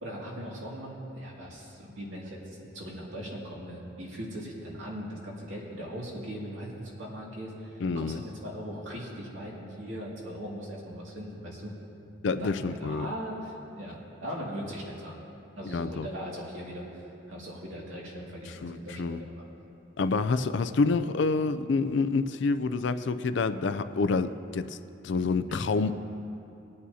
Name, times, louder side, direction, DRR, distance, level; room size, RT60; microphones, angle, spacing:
voice 1, 0.0-2.4 2.7-11.7 12.4-15.2 15.5-19.5 25.5-25.7, equal, 70° right, -4 dB, 2.3 m, -39 dB
voice 2, 7.8-8.2 12.2-13.1 15.6-16.1 18.6-19.2 20.0-24.8 25.0-25.9, left 4 dB, 60° left, 11 dB, 0.4 m, -27 dB
21.0 x 8.7 x 2.8 m, 2.7 s
head